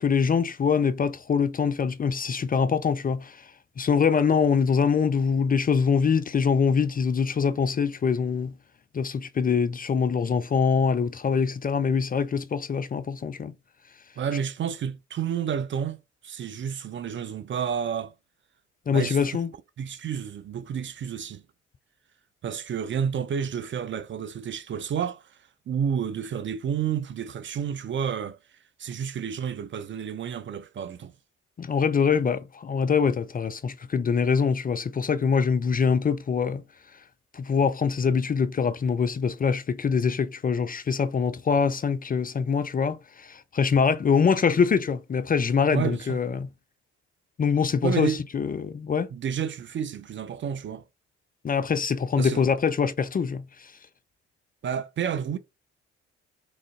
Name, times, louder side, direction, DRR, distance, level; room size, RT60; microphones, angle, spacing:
voice 1, 0.0-3.5 3.8-8.5 8.9-13.5 18.9-19.5 31.6-36.6 37.3-46.5 47.4-49.1 51.4-53.7, left 6 dB, 25° left, 0.5 m, -24 dB
voice 2, 14.2-18.1 18.9-19.4 19.8-21.4 22.4-25.4 25.7-31.1 45.7-46.2 47.8-48.2 49.1-50.8 52.2-52.4 54.6-55.4, right 8 dB, 35° right, 0.5 m, -30 dB
3.8 x 3.2 x 3.5 m
figure-of-eight pair, 45°, 33 cm